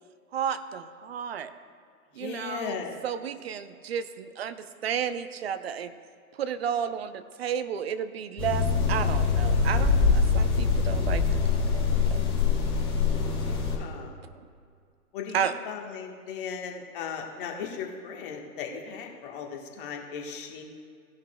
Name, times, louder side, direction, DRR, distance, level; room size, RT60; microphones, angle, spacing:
voice 1, 0.3-1.5 2.2-5.9 6.4-11.8 15.3-15.6, right 8 dB, 40° right, 11 dB, 0.6 m, -32 dB
voice 2, 2.2-3.0 13.4-14.2 15.1-20.6, left 6 dB, 35° left, 1 dB, 1.4 m, -37 dB
sound 1, 8.4-13.8, left 5 dB, 10° left, 2.0 m, -24 dB
17.0 x 11.0 x 2.2 m, 2.2 s
figure-of-eight pair, 130°, 47 cm